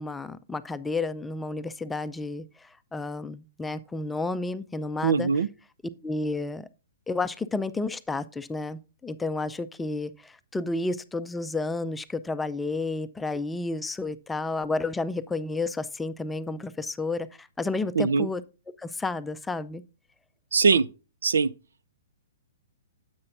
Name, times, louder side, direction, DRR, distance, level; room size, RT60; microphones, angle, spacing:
voice 1, 0.0-5.3 6.0-6.7 7.1-18.4 18.8-19.8, left 3 dB, 10° left, 0.5 m, -31 dB
voice 2, 5.0-5.5 18.0-18.3 20.5-20.9 21.2-21.5, right 5 dB, 80° right, 0.5 m, -21 dB
9.6 x 7.7 x 2.6 m
hypercardioid pair, 130°, 0 cm